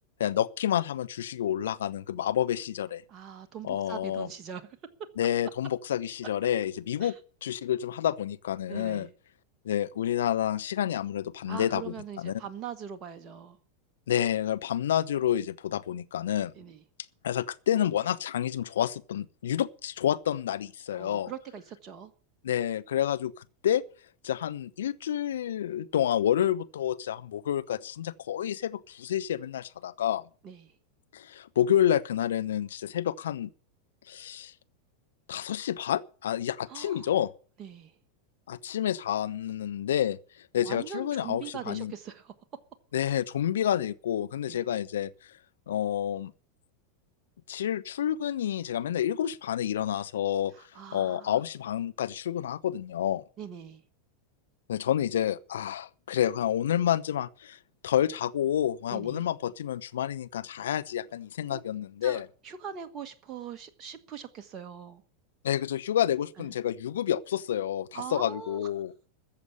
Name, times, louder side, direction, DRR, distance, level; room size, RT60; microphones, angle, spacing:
voice 1, 0.2-3.0 3.6-4.3 5.2-7.1 7.4-9.1 9.6-11.9 12.2-12.4 14.1-16.5 17.2-21.3 22.4-23.3 23.6-23.8 24.2-30.2 31.1-33.5 34.1-34.5 35.3-37.3 38.5-40.2 40.5-41.9 42.9-45.1 45.7-46.3 47.5-50.5 50.9-53.2 54.7-57.6 57.8-62.3 65.4-68.9, left 10 dB, 70° left, 0.8 m, -29 dB
voice 2, 3.1-4.7 7.0-7.2 8.7-9.1 11.5-13.6 16.6-16.8 20.9-22.1 30.4-30.8 36.7-37.1 37.6-37.9 40.6-42.3 44.5-44.6 50.5-51.4 53.4-53.8 58.9-59.3 61.5-61.6 62.0-65.0 66.4-66.5 67.9-68.7, right 7 dB, 35° right, 1.4 m, -42 dB
14.5 x 7.1 x 9.5 m
figure-of-eight pair, 90°, 0 cm